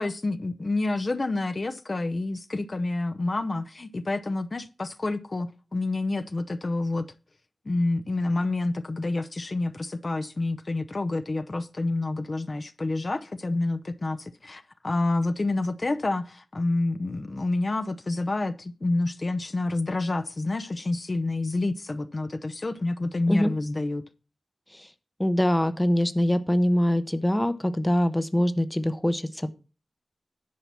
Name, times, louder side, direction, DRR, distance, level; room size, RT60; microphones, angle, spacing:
voice 1, 0.0-7.1 7.7-24.0, left 2 dB, 45° left, 0.7 m, -28 dB
voice 2, 25.2-29.5, equal, 10° left, 0.8 m, -23 dB
10.5 x 5.7 x 6.0 m
wide cardioid pair, 100°, 0 cm